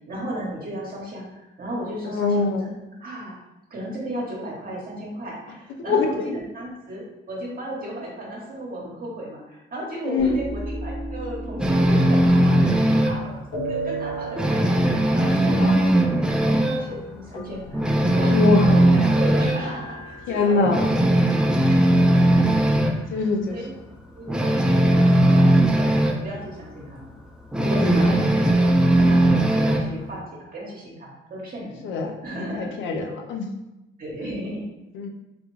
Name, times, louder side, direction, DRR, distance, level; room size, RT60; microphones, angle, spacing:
voice 1, 0.1-2.7 3.0-3.3 3.7-13.4 13.6-18.4 18.6-21.2 21.7-22.5 23.0-23.7 24.1-27.1 27.6-31.8 32.2-32.7 34.0-34.6, right 1 dB, 45° right, -4 dB, 1.0 m, -35 dB
voice 2, 2.1-2.7 5.9-6.4 10.0-10.4 15.4-15.7 18.2-18.7 20.3-20.9 22.9-23.6 27.7-28.1 31.8-32.1 32.4-33.5 35.0-35.1, left 4 dB, 75° left, 3 dB, 0.6 m, -24 dB
sound 1, 10.2-13.1 13.5-15.3 15.6-15.7 16.0-16.2 16.5-16.6 16.9-18.6 19.4-21.0 21.7-22.6, right 2 dB, 60° left, 1.2 m, -35 dB
sound 2, 11.6-13.2 13.6-13.8 14.1-16.9 17.2-17.3 17.7-19.6 20.1-20.2 20.6-23.0 24.3-26.2 27.5-29.9, right 1 dB, 5° right, 0.4 m, -18 dB
3.7 x 2.4 x 3.0 m, 0.96 s
cardioid pair, 90°, 20 cm